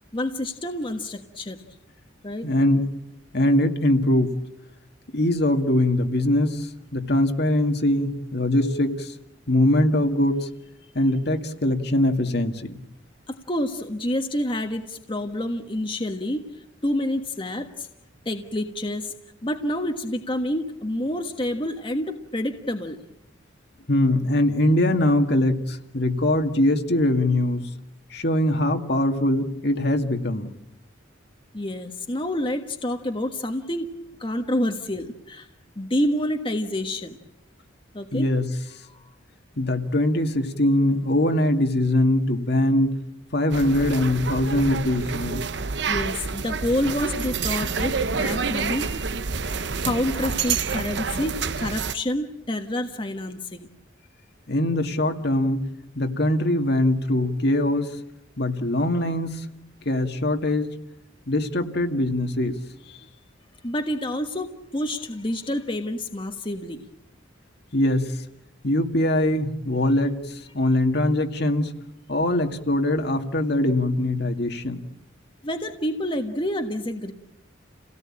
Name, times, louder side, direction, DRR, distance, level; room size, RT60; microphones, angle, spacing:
voice 1, 0.1-1.6 2.2-2.5 13.3-17.9 18.2-19.1 19.4-23.0 31.5-35.5 35.7-37.2 37.9-38.3 38.9-39.1 45.8-48.9 49.8-53.7 63.6-66.8 75.4-77.1, left 1 dB, 25° left, 5 dB, 1.4 m, -28 dB
voice 2, 2.4-2.9 3.3-4.3 5.1-9.1 9.5-10.5 10.9-12.8 23.9-27.7 28.1-30.5 38.1-38.5 39.6-43.0 43.3-45.4 54.5-55.7 56.0-57.9 58.4-59.4 59.9-60.7 61.3-62.6 67.7-68.2 68.6-71.7 72.1-74.8, left 1 dB, 60° left, 5 dB, 2.1 m, -22 dB
sound 1, 43.5-51.9, right 5 dB, 65° right, 0.9 m, -28 dB
30.0 x 17.5 x 8.8 m, 0.90 s
head